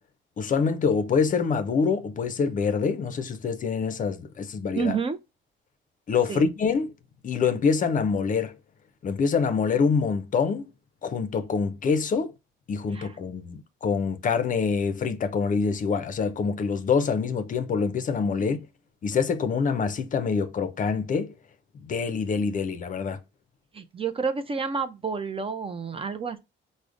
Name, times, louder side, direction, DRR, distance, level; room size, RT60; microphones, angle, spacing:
voice 1, 0.4-4.9 6.1-6.9 7.2-8.6 9.0-10.7 11.0-12.3 12.7-18.6 19.0-21.3 21.8-23.2, left 5 dB, 40° left, 0.5 m, -25 dB
voice 2, 4.7-5.2 6.3-6.5 12.9-13.2 18.4-18.5 23.7-26.4, right 5 dB, 30° right, 0.4 m, -30 dB
4.8 x 2.1 x 2.4 m
cardioid pair, 90°, 20 cm